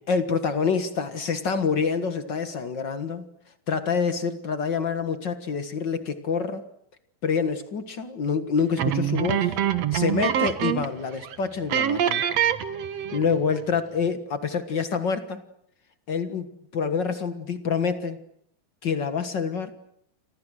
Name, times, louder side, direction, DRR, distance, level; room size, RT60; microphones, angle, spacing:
voice 1, 0.1-3.2 3.7-6.6 7.2-9.6 9.9-12.2 13.1-15.4 16.1-16.5 16.7-18.2 18.8-19.7, left 5 dB, 45° left, 10 dB, 1.5 m, -26 dB
sound 1, 8.8-11.0 11.2-11.4 11.7-13.3, right 10 dB, 60° right, 2.2 m, -25 dB
29.5 x 26.5 x 6.4 m, 0.68 s
omnidirectional pair, 3.9 m